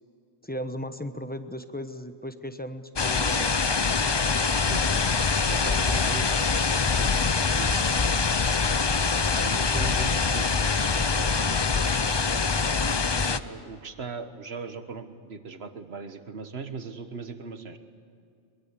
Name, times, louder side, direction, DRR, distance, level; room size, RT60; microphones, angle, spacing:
voice 1, 0.4-3.6 13.1-13.4, equal, 10° left, 9 dB, 1.0 m, -36 dB
sound 1, 3.0-13.4, left 4 dB, 30° left, 0.5 m, -24 dB
voice 2, 5.5-6.3 7.0-7.1 7.5-7.9 9.4-11.7 13.4-17.8, right 4 dB, 65° right, 8 dB, 1.6 m, -38 dB
22.5 x 22.5 x 8.3 m, 2.5 s
omnidirectional pair, 1.2 m